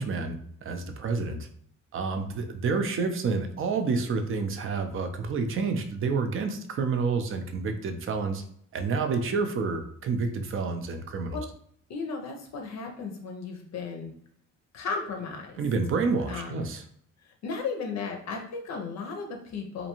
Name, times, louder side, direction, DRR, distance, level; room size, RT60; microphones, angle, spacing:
voice 1, 0.0-1.5 1.9-8.4 8.7-11.4 15.6-16.8, right 4 dB, 45° right, 7 dB, 0.5 m, -29 dB
voice 2, 11.9-14.1 14.7-15.6 16.3-16.7 17.2-19.9, left 4 dB, 60° left, 3 dB, 0.5 m, -35 dB
2.5 x 2.2 x 2.9 m, 0.65 s
cardioid pair, 90°, 30 cm